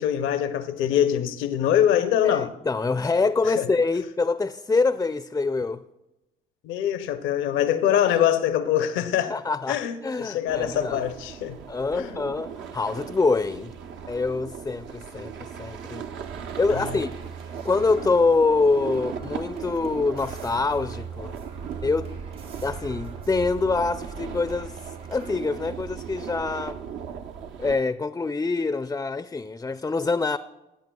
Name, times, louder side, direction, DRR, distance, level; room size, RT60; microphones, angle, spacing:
voice 1, 0.0-2.5 3.6-3.7 6.6-9.3 9.7-11.6 11.9-12.2 16.7-17.0, left 10 dB, 80° left, 0.6 m, -24 dB
voice 2, 2.2-5.8 9.3-11.0 11.7-13.7 14.1-16.0 16.6-17.1 17.6-21.4 21.8-22.1 22.6-24.8 25.1-26.8 27.6-30.4, left 3 dB, 15° left, 0.4 m, -25 dB
sound 1, 10.5-27.8, right 7 dB, 70° right, 0.7 m, -37 dB
sound 2, 16.2-25.3, right 3 dB, 85° right, 3.8 m, -50 dB
16.5 x 8.5 x 2.3 m
supercardioid pair, 60°, 20 cm